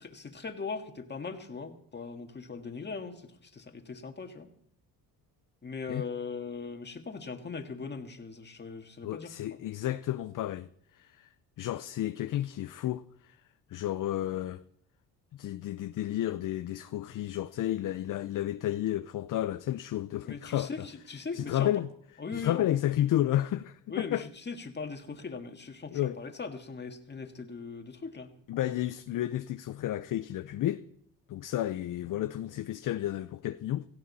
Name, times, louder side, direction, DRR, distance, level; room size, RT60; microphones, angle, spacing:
voice 1, 0.1-4.5 5.6-9.6 20.3-21.7 22.2-22.7 23.9-28.3, left 4 dB, 25° left, 1.8 m, -40 dB
voice 2, 9.0-10.7 10.9-11.3 11.6-13.4 13.7-14.6 15.3-20.9 21.3-21.9 22.3-24.3 25.9-26.2 28.5-30.8 31.3-33.8, left 13 dB, 50° left, 0.6 m, -31 dB
17.5 x 15.0 x 4.2 m
cardioid pair, 105°, 41 cm